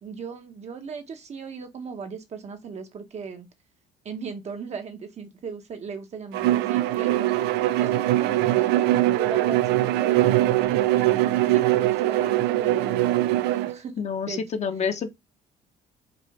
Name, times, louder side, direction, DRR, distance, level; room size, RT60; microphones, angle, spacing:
voice 1, 0.0-3.5 4.0-7.3 7.8-8.7 9.0-14.0 14.3-14.4, right 5 dB, 40° right, 1.0 m, -37 dB
Bowed string instrument, 6.3-13.7, right 15 dB, 90° right, 0.4 m, -22 dB
voice 2, 14.0-15.1, left 6 dB, 40° left, 0.9 m, -28 dB
4.9 x 2.5 x 3.5 m
cardioid pair, 110°, 17 cm